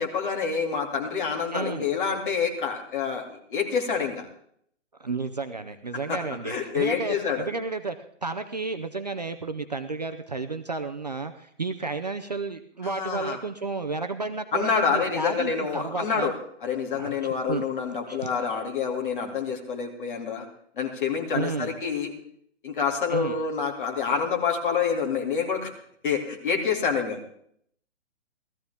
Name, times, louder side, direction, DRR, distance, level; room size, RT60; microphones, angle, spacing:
voice 1, 0.0-4.3 5.9-6.2 6.4-7.5 12.8-13.4 14.5-16.3 16.6-20.5 20.8-22.1 22.6-25.7 26.0-27.2, left 6 dB, 45° left, 1 dB, 2.5 m, -27 dB
voice 2, 1.5-1.9 5.0-8.0 8.2-16.3 17.0-17.7 18.1-18.3 21.3-21.7 23.1-23.4, right 3 dB, 35° right, 8 dB, 0.5 m, -32 dB
17.0 x 14.0 x 3.5 m, 0.66 s
hypercardioid pair, 180°, 36 cm